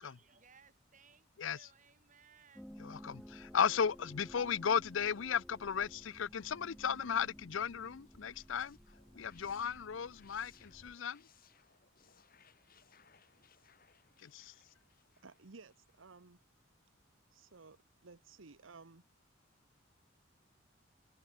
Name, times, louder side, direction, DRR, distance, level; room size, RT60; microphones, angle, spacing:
voice 1, 0.0-2.6, right 6 dB, 40° right, 5.7 m, -63 dB
voice 2, 1.4-1.7 2.8-8.8 9.1-11.3 14.2-14.5, left 7 dB, 80° left, 0.6 m, -35 dB
sound 1, 2.6-10.9, equal, ahead, 0.8 m, -55 dB
sound 2, 8.1-16.2, left 7 dB, 50° left, 5.2 m, -67 dB
voice 3, 15.2-16.4 17.3-19.0, right 4 dB, 90° right, 1.1 m, -56 dB
head